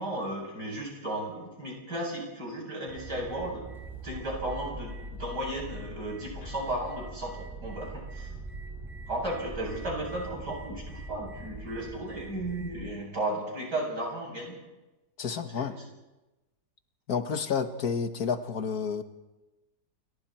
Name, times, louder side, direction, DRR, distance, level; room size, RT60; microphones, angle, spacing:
voice 1, 0.0-3.6 4.0-8.3 9.1-14.5 15.5-15.8, right 1 dB, 80° right, -1 dB, 8.7 m, -34 dB
sound 1, 2.9-12.9, right 2 dB, ahead, 5.8 m, -42 dB
voice 2, 15.2-15.8 17.1-19.0, left 6 dB, 65° left, 8 dB, 1.7 m, -30 dB
28.5 x 23.5 x 4.4 m, 1.1 s
omnidirectional pair, 1.8 m